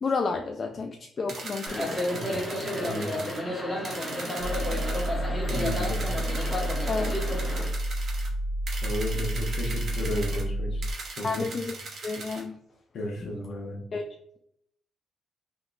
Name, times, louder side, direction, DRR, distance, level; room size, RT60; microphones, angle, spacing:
voice 1, 0.0-2.0 6.9-7.2 11.2-11.7 12.0-12.6 13.9-14.0, left 4 dB, 40° left, 4 dB, 0.3 m, -31 dB
sound 1, 1.3-3.4 3.8-5.1 5.5-8.3 8.7-10.4 10.8-12.4, right 3 dB, 60° right, 0.9 m, -39 dB
sound 2, 1.7-7.7, left 1 dB, 10° left, 1.1 m, -31 dB
voice 2, 2.0-3.2 5.5-6.0 8.8-10.8 11.1-11.5 12.9-13.8, left 1 dB, 60° left, 0 dB, 0.9 m, -33 dB
sound 3, 4.4-10.9, right 1 dB, 75° right, 0.3 m, -30 dB
3.6 x 2.2 x 2.5 m, 0.73 s
cardioid pair, 90°, 0 cm